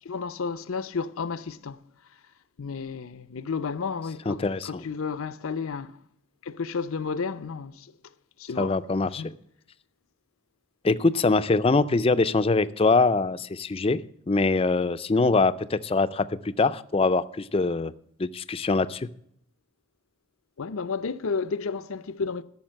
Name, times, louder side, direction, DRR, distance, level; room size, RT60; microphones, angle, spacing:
voice 1, 0.0-1.8 2.6-5.9 6.4-7.9 8.4-8.7 9.2-9.3 20.6-22.4, left 5 dB, 80° left, 0.6 m, -32 dB
voice 2, 4.3-4.8 8.6-9.3 10.8-17.9 18.2-19.1, left 3 dB, 25° left, 0.4 m, -23 dB
13.5 x 5.9 x 7.4 m
head